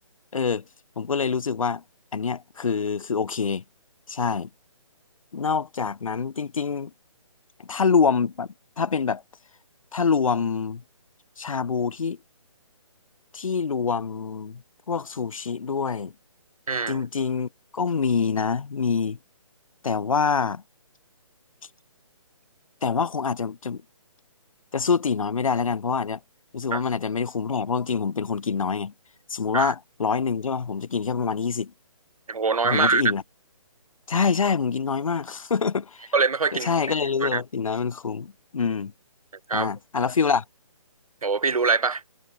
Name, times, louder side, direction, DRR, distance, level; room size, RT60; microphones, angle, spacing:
voice 1, 0.3-0.6 1.0-1.8 2.1-3.6 4.1-4.5 5.3-6.9 7.6-8.5 8.8-9.2 9.9-10.8 11.4-12.2 13.3-14.6 14.9-16.1 16.9-19.2 19.8-20.6 22.8-23.8 24.7-26.2 26.5-28.9 29.3-31.7 32.6-33.2 34.1-36.1 36.6-38.9 39.5-40.4, left 5 dB, 75° left, 1.1 m, -25 dB
voice 2, 16.7-17.0 26.7-26.8 29.5-29.7 32.3-33.0 36.1-36.7 37.2-37.4 39.5-39.7 41.2-42.0, right 4 dB, 85° right, 2.2 m, -23 dB
hypercardioid pair, 170°, 18 cm